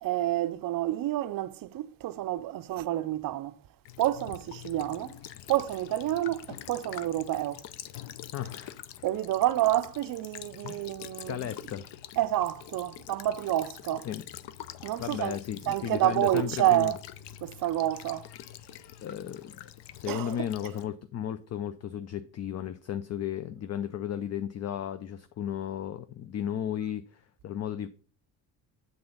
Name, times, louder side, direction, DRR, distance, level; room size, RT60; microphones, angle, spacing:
voice 1, 0.0-3.6 4.0-5.2 5.5-7.6 9.0-11.5 12.2-14.1 14.8-15.4 15.7-17.0 17.4-18.3 20.1-20.5, right 14 dB, 55° right, 0.5 m, -29 dB
Child speech kid speaking / Bird vocalization bird call bird song / Stream, 3.8-20.8, left 12 dB, 85° left, 0.7 m, -46 dB
voice 2, 8.3-8.8 10.6-10.9 11.3-11.9 14.0-14.2 15.0-16.9 19.0-19.5 20.0-27.9, left 10 dB, 40° left, 0.4 m, -34 dB
7.9 x 3.9 x 5.4 m
cardioid pair, 155°, 41 cm